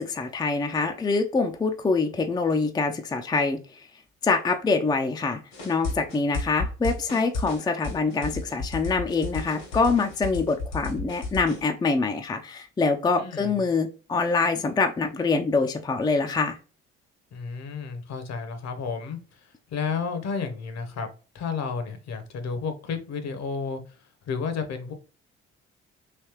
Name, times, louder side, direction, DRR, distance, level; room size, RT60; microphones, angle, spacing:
voice 1, 0.0-3.9 4.2-5.4 5.6-16.6, left 4 dB, 15° left, 5 dB, 0.4 m, -25 dB
sound 1, 5.5-11.6, left 3 dB, 75° left, 1.3 m, -33 dB
voice 2, 13.2-13.5 17.3-21.1 21.3-23.8 24.3-24.9, left 5 dB, 50° left, 8 dB, 0.8 m, -32 dB
3.3 x 3.0 x 2.9 m, 0.36 s
figure-of-eight pair, 45°, 34 cm